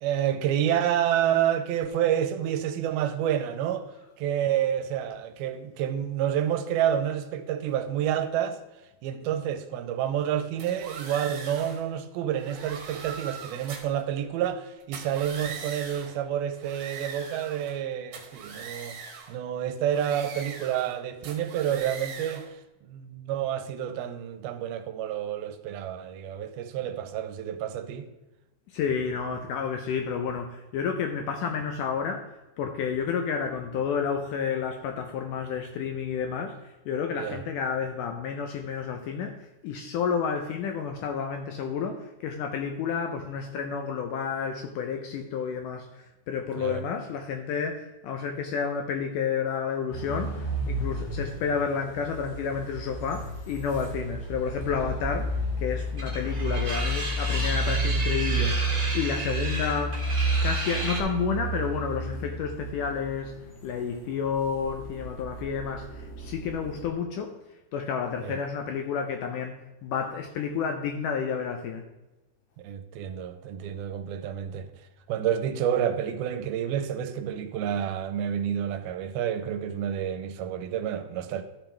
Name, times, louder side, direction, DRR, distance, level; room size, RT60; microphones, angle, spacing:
voice 1, 0.0-3.8 4.2-8.6 9.0-19.0 19.3-22.6 22.9-28.1 37.2-37.4 46.6-46.8 68.2-68.4 72.6-74.7 75.1-81.4, right 10 dB, 85° right, 2.5 m, -29 dB
sound 1, 10.6-11.8 12.4-14.0 14.8-16.2 16.5-17.8 18.1-19.3 19.9-20.9 21.2-22.5, right 5 dB, 60° right, 2.2 m, -41 dB
voice 2, 28.7-58.6 58.9-60.0 60.4-63.3 63.6-67.3 67.7-71.8, left 6 dB, 75° left, 1.9 m, -30 dB
sound 2, 49.9-66.9, right 1 dB, 40° left, 0.9 m, -31 dB
sound 3, 56.0-61.0, right 2 dB, 30° right, 1.6 m, -33 dB
13.0 x 6.1 x 3.4 m
omnidirectional pair, 4.4 m